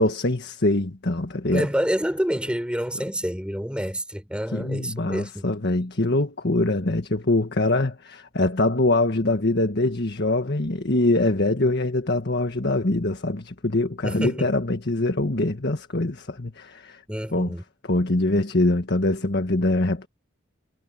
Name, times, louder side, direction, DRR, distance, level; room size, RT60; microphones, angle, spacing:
voice 1, 0.0-1.7 4.5-17.0 17.3-17.6 17.9-20.1, left 2 dB, 55° left, 1.7 m, -23 dB
voice 2, 1.5-5.5 14.0-14.5 17.1-17.6, equal, 5° right, 3.7 m, -28 dB
head